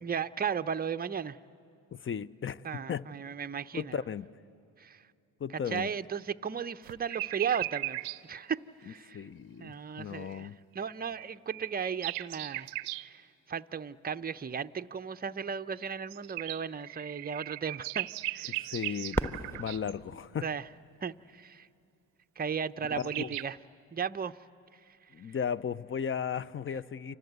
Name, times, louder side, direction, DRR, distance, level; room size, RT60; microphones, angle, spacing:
voice 1, 0.0-1.4 2.6-3.9 4.8-5.0 5.7-9.2 9.6-10.5 10.7-12.7 13.0-18.6 20.4-20.6 21.0-21.7 22.4-23.6 23.9-24.3, right 7 dB, 20° right, 0.6 m, -35 dB
voice 2, 1.9-3.1 3.7-4.3 5.4-5.9 9.1-10.6 18.5-20.5 22.9-23.4 25.1-27.2, left 7 dB, 30° left, 0.6 m, -36 dB
sound 1, 6.8-8.2 10.8-13.1 15.7-19.9 22.6-22.7 22.9-23.4, right 21 dB, 85° right, 0.6 m, -38 dB
Fireworks, 19.1-21.9 22.6-22.7 23.4-23.8 25.7-25.8, right 1 dB, 5° left, 1.3 m, -38 dB
29.5 x 24.5 x 8.1 m
supercardioid pair, 60°, 45 cm